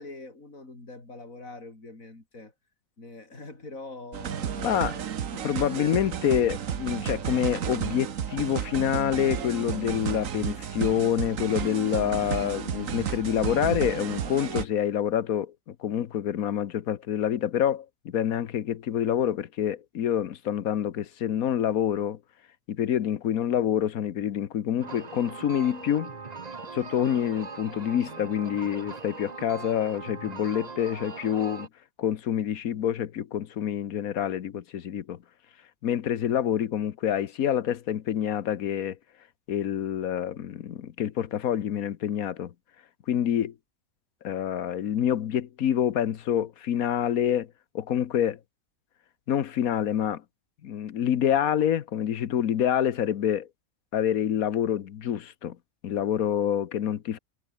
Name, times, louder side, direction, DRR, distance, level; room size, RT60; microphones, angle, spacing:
voice 1, 0.0-2.5 3.0-5.1 5.4-5.5, left 2 dB, 75° left, 5.3 m, -44 dB
sound 1, 4.1-14.6, right 8 dB, 70° right, 1.5 m, -32 dB
voice 2, 4.6-5.0 5.4-22.2 22.7-26.1 26.7-31.7 32.0-35.2 35.8-39.0 39.5-42.5 43.1-43.5 44.2-47.5 47.7-48.4 49.3-50.2 50.6-53.5 53.9-55.6 55.8-57.2, left 10 dB, 90° left, 1.4 m, -27 dB
sound 2, 24.8-31.7, right 4 dB, 30° right, 1.2 m, -41 dB
omnidirectional pair, 1.4 m